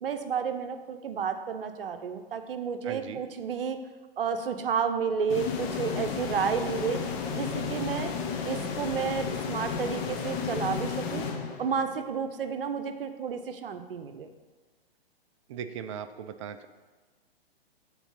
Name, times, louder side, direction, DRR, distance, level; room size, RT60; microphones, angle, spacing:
voice 1, 0.0-3.8 4.2-7.0 7.3-8.1 8.5-11.3 11.6-14.3, right 6 dB, 65° right, 8 dB, 0.7 m, -31 dB
voice 2, 2.8-3.2 15.5-16.7, right 8 dB, 30° right, 9 dB, 0.4 m, -38 dB
sound 1, 5.3-12.1, left 6 dB, 25° left, 0.6 m, -33 dB
7.0 x 4.0 x 5.8 m, 1.3 s
figure-of-eight pair, 120°, 30 cm